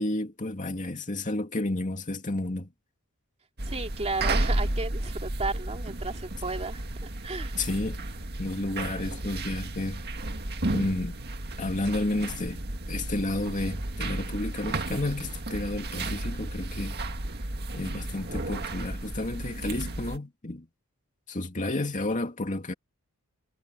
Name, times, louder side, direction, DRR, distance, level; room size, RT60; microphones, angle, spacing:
voice 1, 0.0-2.7 7.6-8.0 8.4-10.0 10.7-11.2 11.6-12.6 12.9-17.0 17.7-20.7 21.3-22.7, left 2 dB, 35° left, 2.5 m, -31 dB
voice 2, 3.6-7.5, right 3 dB, 30° right, 2.6 m, -34 dB
sound 1, 3.6-20.2, right 2 dB, 50° right, 1.9 m, -33 dB
head